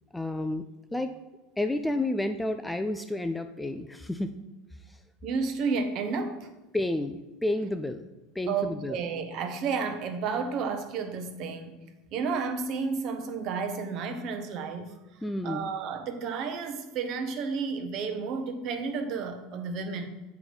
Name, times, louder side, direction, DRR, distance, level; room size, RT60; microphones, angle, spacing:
voice 1, 0.1-0.6 0.9-1.1 1.6-4.3 6.7-8.1 8.4-9.0 15.2-15.7, left 1 dB, 5° left, 8 dB, 0.3 m, -30 dB
voice 2, 5.2-6.5 8.5-11.8 12.1-14.9 15.4-20.1, right 5 dB, 50° right, 8 dB, 0.8 m, -31 dB
7.7 x 4.6 x 4.1 m, 1.1 s
supercardioid pair, 135°, 0 cm